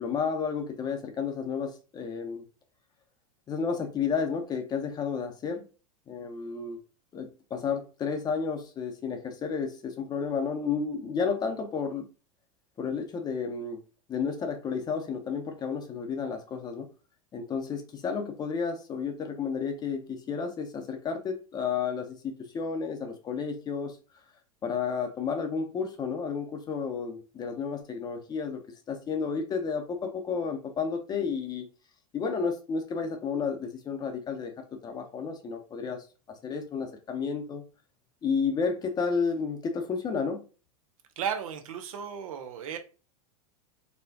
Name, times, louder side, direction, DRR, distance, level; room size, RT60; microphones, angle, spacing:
voice 1, 0.0-2.4 3.5-5.7 6.1-6.8 7.1-12.1 12.8-13.8 14.1-16.9 17.3-24.0 24.6-28.6 28.9-31.7 32.1-37.6 38.2-40.4, left 5 dB, 25° left, 0.7 m, -32 dB
voice 2, 41.2-42.8, right 8 dB, 80° right, 0.7 m, -34 dB
4.1 x 2.2 x 2.7 m
supercardioid pair, 125°, 18 cm